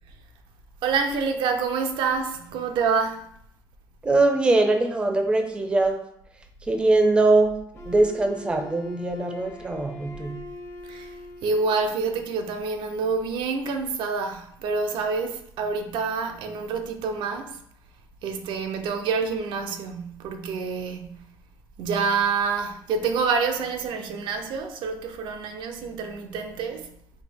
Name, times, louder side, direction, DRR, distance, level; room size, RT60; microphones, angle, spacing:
voice 1, 0.8-3.3 10.8-11.1 11.4-17.6 18.2-21.2 21.8-26.9, right 5 dB, 80° right, 0.5 m, -27 dB
voice 2, 4.0-6.0 6.7-7.5 7.9-10.4, right 2 dB, 10° right, 0.4 m, -21 dB
Wind instrument woodwind instrument, 7.7-11.9, left 1 dB, 35° left, 0.6 m, -42 dB
4.2 x 2.7 x 3.4 m
cardioid pair, 170°, 8 cm